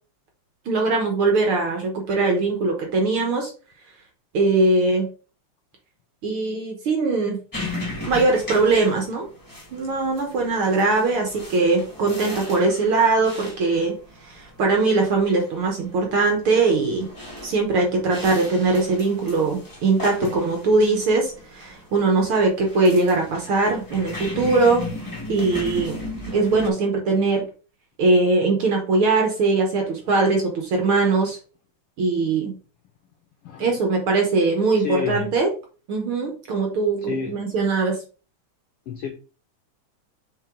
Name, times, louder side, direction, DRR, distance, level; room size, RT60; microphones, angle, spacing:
voice 1, 0.6-3.5 4.3-5.1 6.2-7.4 8.1-9.3 9.7-13.9 14.2-17.1 17.4-24.9 25.3-26.0 26.3-27.5 28.0-31.4 32.0-32.5 33.6-35.5 35.9-38.0, right 3 dB, 55° right, 1.7 m, -21 dB
sound 1, 7.5-26.7, left 2 dB, 15° left, 0.6 m, -36 dB
voice 2, 34.7-35.3 37.0-37.4 38.9-39.1, left 8 dB, 75° left, 1.3 m, -29 dB
6.3 x 4.3 x 3.8 m
omnidirectional pair, 3.4 m